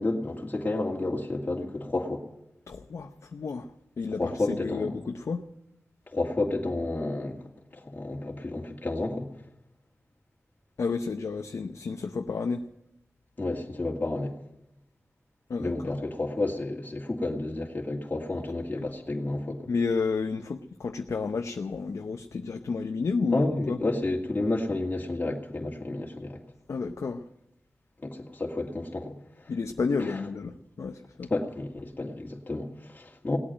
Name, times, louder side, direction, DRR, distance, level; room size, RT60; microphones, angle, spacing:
voice 1, 0.0-2.3 4.2-5.0 6.1-7.4 7.7-9.3 13.4-14.3 15.6-19.7 23.3-26.4 28.0-29.5 30.0-30.2 31.3-33.4, left 2 dB, 35° left, -1 dB, 2.3 m, -31 dB
voice 2, 2.7-3.7 4.0-5.5 10.8-12.6 15.5-16.0 19.7-23.8 26.7-27.3 29.5-31.3, left 4 dB, 75° left, 5 dB, 0.7 m, -31 dB
18.0 x 8.7 x 8.9 m, 0.88 s
cardioid pair, 60°, 5 cm